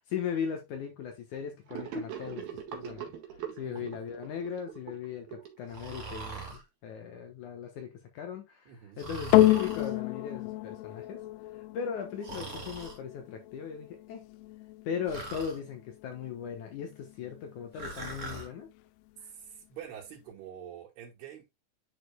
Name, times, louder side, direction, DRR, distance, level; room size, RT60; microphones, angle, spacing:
voice 1, 0.0-3.0 3.4-11.2 11.5-14.2 14.9-18.7, left 7 dB, 65° left, 2.2 m, -38 dB
Gurgling / Sink (filling or washing), 1.7-6.2, right 6 dB, 70° right, 3.5 m, -41 dB
voice 2, 3.6-4.0 8.7-9.1 19.2-21.5, right 9 dB, 90° right, 3.8 m, -46 dB
Breathing, 5.7-6.6 9.0-9.9 12.2-13.0 15.1-15.6 17.7-18.5, right 3 dB, 25° right, 1.9 m, -41 dB
sound 1, 9.3-17.9 18.6-18.7, left 15 dB, 90° left, 2.6 m, -30 dB
10.5 x 5.1 x 2.3 m
omnidirectional pair, 4.5 m